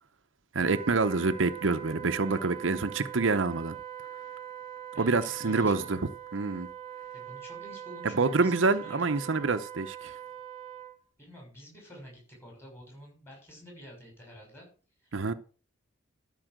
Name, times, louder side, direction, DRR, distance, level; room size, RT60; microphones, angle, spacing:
voice 1, 0.5-3.8 5.0-6.0 6.3-6.7 8.1-10.1 15.1-15.3, right 3 dB, 75° right, 0.8 m, -27 dB
Wind instrument woodwind instrument, 0.6-11.0, right 10 dB, 30° right, 1.5 m, -42 dB
voice 2, 4.9-6.0 7.1-9.3 11.2-14.7 15.0-15.2, equal, 10° left, 6.0 m, -49 dB
12.5 x 5.6 x 6.3 m
head